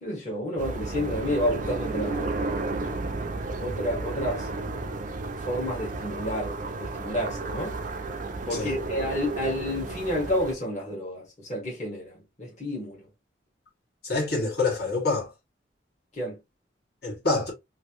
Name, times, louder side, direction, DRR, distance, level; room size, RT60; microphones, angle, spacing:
voice 1, 0.0-2.3 3.6-4.5 5.4-7.8 8.5-13.1 16.1-16.4, left 1 dB, 40° left, 1.4 m, -30 dB
sound 1, 0.6-10.5, right 2 dB, 45° right, 0.5 m, -32 dB
voice 2, 14.0-15.3 17.0-17.5, left 3 dB, 55° left, 1.5 m, -26 dB
3.1 x 2.6 x 2.9 m
head